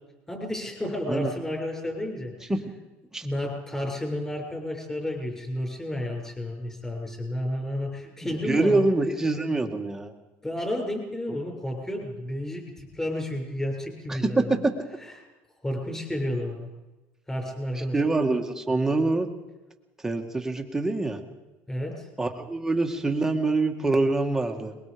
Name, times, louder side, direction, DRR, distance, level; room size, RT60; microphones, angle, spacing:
voice 1, 0.3-2.5 3.2-8.8 10.4-14.6 15.0-15.1 15.6-16.7 17.3-18.0 21.7-22.1, left 1 dB, 10° left, 1 dB, 7.0 m, -31 dB
voice 2, 8.5-10.1 11.3-11.4 14.1-14.7 17.9-19.3 20.0-21.2 22.2-24.8, right 2 dB, 10° right, 4 dB, 2.2 m, -25 dB
23.0 x 22.0 x 5.3 m, 1.1 s
cardioid pair, 130°, 6 cm